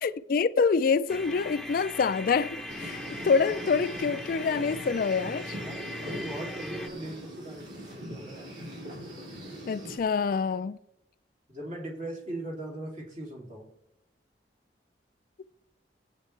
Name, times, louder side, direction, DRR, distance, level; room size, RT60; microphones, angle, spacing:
voice 1, 0.0-5.6 9.7-10.8, left 5 dB, 50° left, 0.4 m, -26 dB
sound 1, 1.1-6.9, left 1 dB, ahead, 0.9 m, -40 dB
sound 2, 2.7-10.0, equal, 80° right, 3.5 m, -41 dB
voice 2, 5.6-7.7 8.0-8.5 11.5-13.7, right 1 dB, 40° right, 2.9 m, -39 dB
21.0 x 8.3 x 3.3 m
head